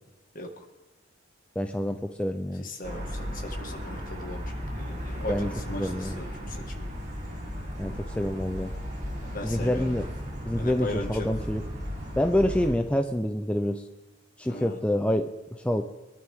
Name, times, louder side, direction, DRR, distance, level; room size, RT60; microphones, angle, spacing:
voice 1, 1.6-2.7 5.3-5.5 5.8-6.2 7.8-8.7 9.4-10.1 10.4-11.6 12.2-13.9 14.4-15.8, left 1 dB, 5° left, 5 dB, 0.5 m, -27 dB
voice 2, 2.6-4.4 4.7-6.9 9.2-10.1 10.5-11.3 14.4-14.8, left 1 dB, 45° left, 3 dB, 1.9 m, -38 dB
sound 1, 2.8-12.7, equal, 35° right, 3.2 m, -35 dB
23.0 x 12.0 x 3.6 m, 1.2 s
head